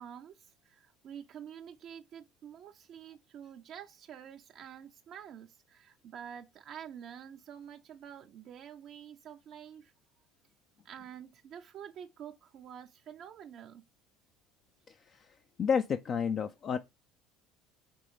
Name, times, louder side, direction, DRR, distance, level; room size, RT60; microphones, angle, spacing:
voice 1, 0.0-9.9 10.8-13.8, right 9 dB, 55° right, 0.4 m, -48 dB
voice 2, 14.9-15.2 15.6-16.8, left 6 dB, 45° left, 0.4 m, -31 dB
5.2 x 3.0 x 3.2 m
hypercardioid pair, 75°, 0 cm